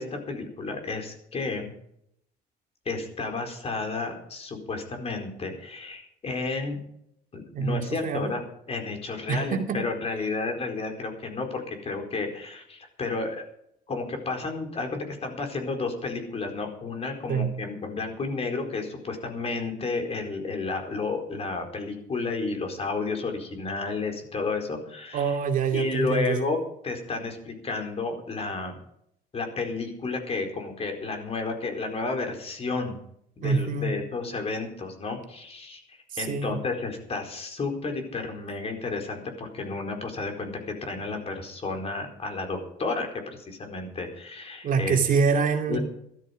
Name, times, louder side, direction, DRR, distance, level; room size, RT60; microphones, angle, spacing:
voice 1, 0.0-1.7 2.8-6.8 7.3-8.4 8.7-13.4 13.9-25.4 25.7-28.8 29.3-33.0 33.4-45.0 45.7-45.8, left 3 dB, 35° left, 3 dB, 4.5 m, -32 dB
voice 2, 7.5-8.3 9.3-9.8 17.3-17.5 25.1-26.4 33.4-33.9 36.1-36.6 44.6-45.8, right 5 dB, 55° right, 3 dB, 2.5 m, -25 dB
14.0 x 13.0 x 5.3 m, 0.73 s
cardioid pair, 110°, 17 cm